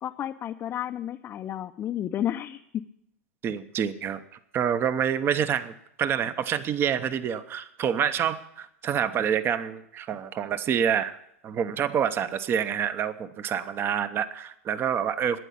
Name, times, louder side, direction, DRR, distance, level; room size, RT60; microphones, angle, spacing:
voice 1, 0.0-2.8, left 11 dB, 30° left, 6 dB, 0.6 m, -32 dB
voice 2, 3.4-4.2 4.5-5.7 6.0-11.2 11.4-15.4, right 8 dB, 30° right, 13 dB, 0.8 m, -27 dB
12.5 x 9.1 x 8.6 m, 0.76 s
hypercardioid pair, 110°, 8 cm